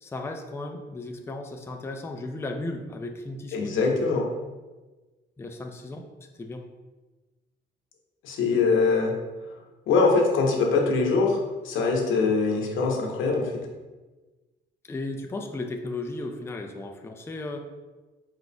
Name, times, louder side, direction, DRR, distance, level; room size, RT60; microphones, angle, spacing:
voice 1, 0.0-3.8 5.4-6.1 6.4-6.7 14.9-17.6, left 2 dB, 15° left, 3 dB, 0.4 m, -35 dB
voice 2, 3.5-4.2 8.2-9.1 9.9-11.4 11.6-13.7, left 4 dB, 80° left, 0 dB, 0.9 m, -23 dB
4.7 x 4.0 x 2.2 m, 1.2 s
cardioid pair, 90°, 20 cm